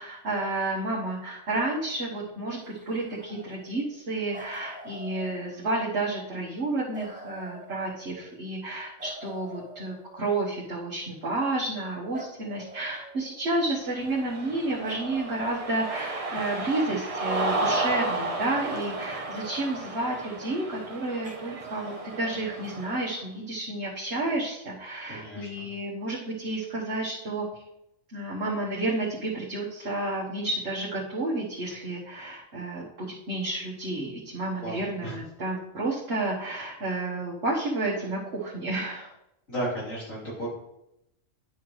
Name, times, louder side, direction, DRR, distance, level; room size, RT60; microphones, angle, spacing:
voice 1, 0.0-27.5 28.1-39.1, right 2 dB, 60° right, -6 dB, 1.5 m, -31 dB
sound 1, 2.6-4.0 4.3-6.0 6.9-8.4 9.0-10.6 12.1-13.8 14.8-16.5 17.3-17.5 18.6-20.3 21.2-22.4, right 1 dB, 10° right, 0.3 m, -46 dB
Cheering, 13.9-23.1, right 2 dB, 30° right, 0.8 m, -33 dB
voice 2, 25.1-25.7 34.6-35.2 39.5-40.5, right 1 dB, 90° left, -7 dB, 3.9 m, -34 dB
10.0 x 5.8 x 3.1 m, 0.85 s
omnidirectional pair, 1.3 m